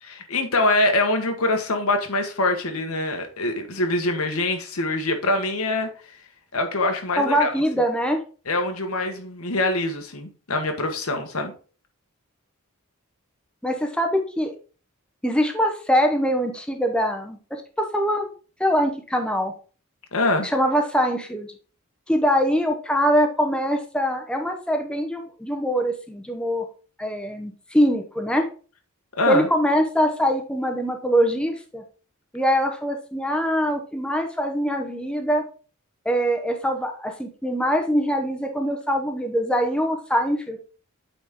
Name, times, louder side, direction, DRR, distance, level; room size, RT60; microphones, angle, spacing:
voice 1, 0.0-5.9 6.5-7.5 8.5-11.5 20.1-20.5 29.2-29.5, left 2 dB, 85° left, 5 dB, 1.3 m, -24 dB
voice 2, 7.2-8.2 13.6-14.5 15.2-18.3 18.6-19.5 20.4-21.5 22.1-26.7 27.0-28.5 29.3-31.8 32.3-35.4 36.0-40.6, equal, 5° left, 4 dB, 0.8 m, -23 dB
8.6 x 4.1 x 3.6 m, 0.38 s
head